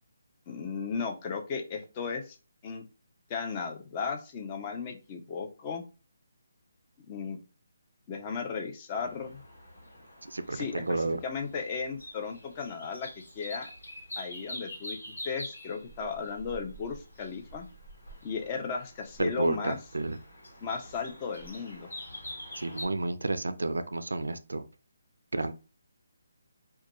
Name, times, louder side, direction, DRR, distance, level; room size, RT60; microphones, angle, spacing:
voice 1, 0.5-2.4 2.6-2.8 3.3-5.8 7.1-7.4 8.1-9.4 10.5-13.7 14.2-17.7 18.2-19.8 20.6-21.9, left 5 dB, 30° left, 0.5 m, -35 dB
sound 1, 8.9-22.9, left 1 dB, 75° left, 1.2 m, -46 dB
voice 2, 10.2-11.2 19.2-20.2 22.6-24.7 25.3-25.5, right 2 dB, 80° right, 0.3 m, -31 dB
2.3 x 2.2 x 2.9 m
figure-of-eight pair, 150°, 0 cm